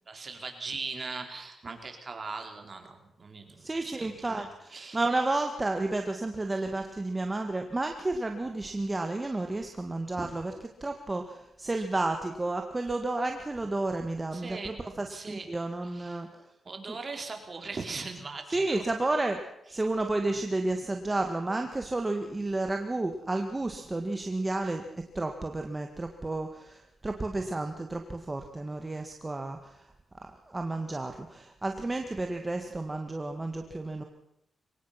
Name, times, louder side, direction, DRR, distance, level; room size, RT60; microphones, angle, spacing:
voice 1, 0.1-5.0 10.2-10.3 14.3-14.8 15.1-15.5 15.8-16.2 16.6-18.8, right 4 dB, 40° right, 4 dB, 4.5 m, -40 dB
voice 2, 3.6-10.5 10.8-16.3 16.9-17.0 18.5-19.4 19.7-24.8 25.2-29.7 30.2-34.0, right 2 dB, 20° right, 5 dB, 1.9 m, -31 dB
23.5 x 19.0 x 6.0 m, 0.81 s
cardioid pair, 85°, 0 cm